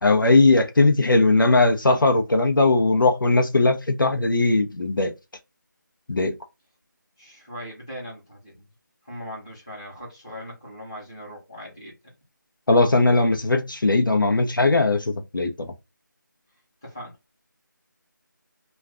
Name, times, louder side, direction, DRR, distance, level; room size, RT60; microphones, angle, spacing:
voice 1, 0.0-5.1 6.1-6.3 12.7-15.7, left 2 dB, 85° left, 0.7 m, -19 dB
voice 2, 7.2-8.7 9.0-11.9 16.8-17.1, equal, 15° left, 0.9 m, -39 dB
2.4 x 2.3 x 3.5 m
figure-of-eight pair, 175°, 11 cm